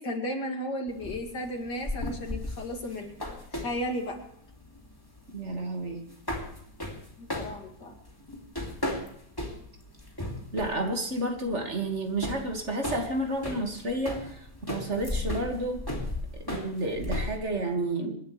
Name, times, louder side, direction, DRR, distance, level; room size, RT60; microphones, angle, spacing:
voice 1, 0.0-3.1 3.5-4.2 7.2-7.9, equal, 85° left, 2 dB, 3.1 m, -34 dB
sound 1, 0.9-17.4, left 1 dB, 15° left, 2.7 m, -36 dB
voice 2, 5.3-6.0 10.5-15.8 16.4-18.2, right 1 dB, 40° right, 2 dB, 2.4 m, -31 dB
27.0 x 11.0 x 3.3 m, 0.71 s
omnidirectional pair, 1.8 m